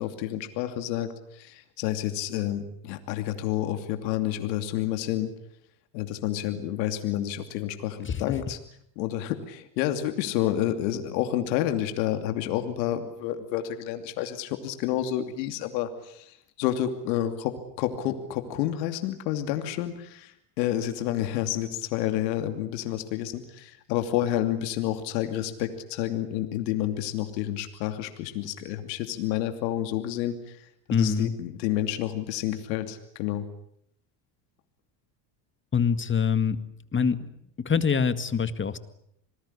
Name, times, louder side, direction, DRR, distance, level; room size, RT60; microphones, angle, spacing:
voice 1, 0.0-5.3 5.9-8.6 9.0-30.7 31.0-33.5, left 12 dB, 90° left, 7 dB, 2.8 m, -29 dB
voice 2, 8.0-8.4 30.9-31.3 35.7-36.6 36.9-37.3 37.6-38.8, left 6 dB, 25° left, 12 dB, 2.0 m, -24 dB
27.0 x 19.5 x 9.9 m, 0.74 s
supercardioid pair, 110°, 49 cm